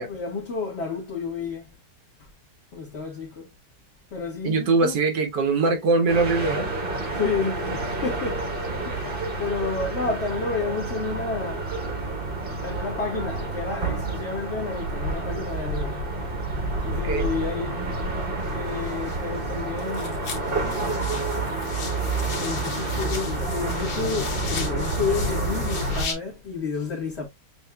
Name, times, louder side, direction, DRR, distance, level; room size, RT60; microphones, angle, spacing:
voice 1, 0.0-1.7 2.7-3.5 4.1-5.0 5.7-5.9 7.1-8.5 8.8-11.7 12.6-16.1 16.8-17.9 18.5-20.3 22.4-27.3, left 4 dB, 40° left, 1.3 m, -31 dB
voice 2, 4.4-6.7 16.9-17.3, right 3 dB, 80° right, 1.6 m, -22 dB
sound 1, 6.1-26.1, right 2 dB, 40° right, 1.0 m, -29 dB
sound 2, 18.4-19.5 19.8-26.1, left 5 dB, 70° left, 1.7 m, -37 dB
6.8 x 2.3 x 2.2 m
omnidirectional pair, 1.9 m